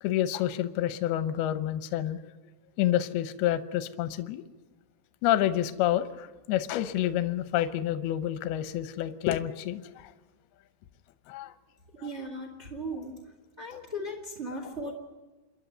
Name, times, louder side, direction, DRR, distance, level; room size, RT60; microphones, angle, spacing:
voice 1, 0.0-2.2 2.8-4.4 5.2-10.1 11.3-11.5, left 12 dB, 75° left, 11 dB, 2.5 m, -28 dB
voice 2, 11.9-13.2 13.6-14.9, equal, 30° right, 2 dB, 1.4 m, -37 dB
28.0 x 11.5 x 9.4 m, 1.2 s
omnidirectional pair, 5.2 m